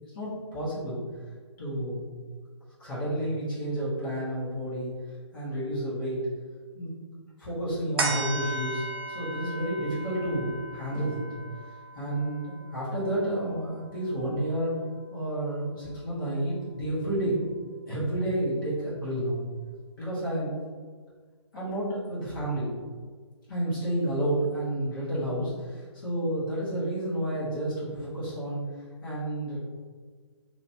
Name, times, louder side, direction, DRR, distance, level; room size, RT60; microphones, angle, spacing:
voice 1, 0.1-1.0 1.6-2.1 2.8-4.9 5.3-6.3 6.7-6.9 7.4-8.8 9.1-11.2 11.9-14.7 15.1-17.4 17.8-19.4 20.0-20.5 21.5-22.7 23.5-28.6 29.0-29.6, right 1 dB, 45° left, -9 dB, 1.5 m, -30 dB
sound 1, 8.0-14.7 15.2-15.3, right 2 dB, 50° right, 0.6 m, -37 dB
3.0 x 3.0 x 2.9 m, 1.5 s
figure-of-eight pair, 145°, 16 cm